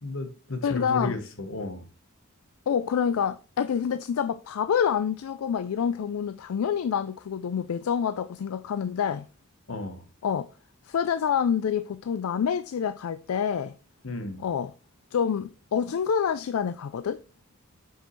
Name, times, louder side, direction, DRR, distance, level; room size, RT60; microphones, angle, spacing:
voice 1, 0.0-1.9 9.7-10.0 14.0-14.4, left 2 dB, 65° left, 1.1 m, -33 dB
voice 2, 0.6-1.2 2.7-9.3 10.2-10.5 10.8-13.8 14.4-14.7 15.1-17.2, left 7 dB, 80° left, 0.4 m, -27 dB
7.5 x 5.5 x 3.1 m
head